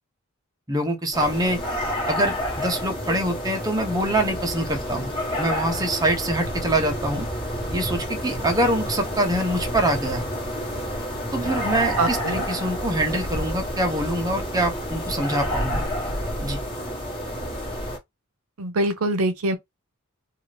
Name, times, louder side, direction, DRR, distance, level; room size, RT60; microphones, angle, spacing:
voice 1, 0.7-1.6 2.1-5.1 5.4-7.3 7.7-10.2 11.3-15.9 16.4-16.6, right 1 dB, 20° right, 0.7 m, -24 dB
sound 1, 1.1-18.0, equal, 25° left, 1.2 m, -29 dB
voice 2, 12.0-12.5 18.6-19.6, right 2 dB, 80° right, 0.6 m, -24 dB
2.7 x 2.4 x 3.2 m
head